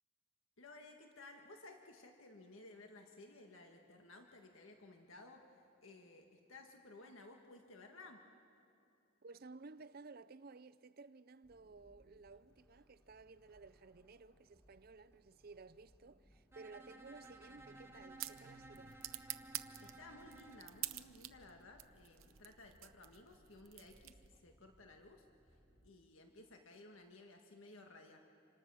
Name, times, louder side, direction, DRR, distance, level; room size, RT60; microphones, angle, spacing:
voice 1, 0.6-8.2 19.8-25.3 25.8-28.2, left 2 dB, 85° left, 1.7 m, -57 dB
voice 2, 9.2-19.0, right 3 dB, 50° right, 0.6 m, -56 dB
sound 1, 11.4-25.9, equal, 15° left, 3.8 m, -70 dB
Bowed string instrument, 16.5-20.7, right 2 dB, 15° right, 1.4 m, -57 dB
sound 2, 17.6-24.5, right 14 dB, 85° right, 0.8 m, -50 dB
27.5 x 26.5 x 6.3 m
head